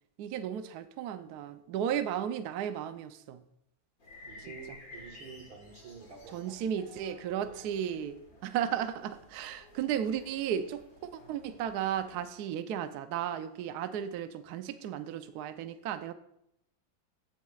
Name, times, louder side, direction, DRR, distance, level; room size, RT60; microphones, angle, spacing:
voice 1, 0.2-3.4 4.4-4.8 6.3-16.1, right 9 dB, 70° right, 10 dB, 1.0 m, -35 dB
sound 1, 4.0-12.2, left 2 dB, 45° left, 2.4 m, -54 dB
voice 2, 4.2-6.4, right 5 dB, 85° right, 2 dB, 2.2 m, -48 dB
15.0 x 7.3 x 2.4 m, 0.75 s
omnidirectional pair, 2.1 m